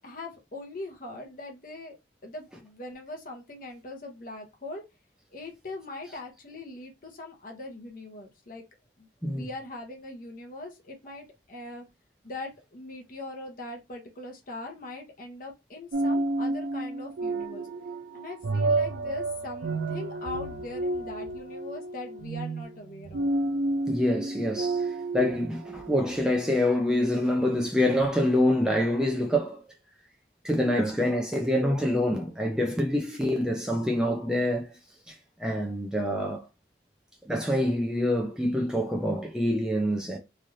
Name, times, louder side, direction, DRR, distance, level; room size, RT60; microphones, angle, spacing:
voice 1, 0.0-1.9 2.2-4.8 5.3-8.6 9.0-11.8 12.2-17.7 18.1-23.3, left 2 dB, 50° left, 0.9 m, -41 dB
sound 1, 15.9-26.2, right 2 dB, 75° right, 0.4 m, -30 dB
voice 2, 23.9-24.9 25.1-29.6 30.4-34.7 35.1-35.2 35.4-36.4 37.3-40.2, left 1 dB, 5° right, 0.5 m, -26 dB
3.2 x 2.5 x 2.6 m
head